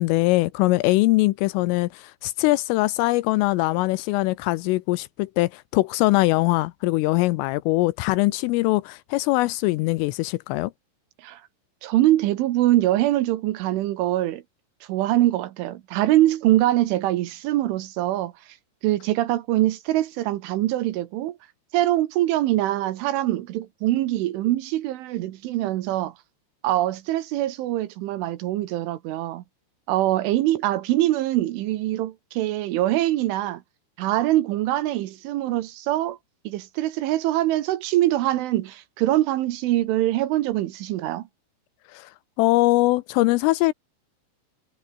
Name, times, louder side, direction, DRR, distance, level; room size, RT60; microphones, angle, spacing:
voice 1, 0.0-10.7 41.9-42.1 42.4-43.7, left 20 dB, 85° left, 3.2 m, -22 dB
voice 2, 11.8-14.4 14.9-18.3 18.8-21.4 21.7-26.1 26.6-29.4 29.9-33.6 34.0-36.2 36.5-41.2, right 15 dB, 75° right, 3.5 m, -23 dB
omnidirectional pair, 5.9 m